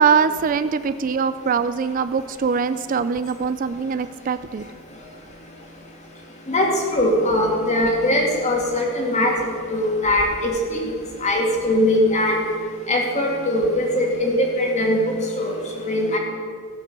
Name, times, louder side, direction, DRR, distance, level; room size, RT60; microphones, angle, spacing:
voice 1, 0.0-4.6, right 6 dB, 40° right, 13 dB, 0.3 m, -22 dB
voice 2, 6.5-9.3 9.7-10.8 11.2-12.4 12.9-15.0 15.4-16.2, left 1 dB, 35° left, 0 dB, 2.3 m, -21 dB
16.5 x 6.8 x 6.7 m, 2.1 s
head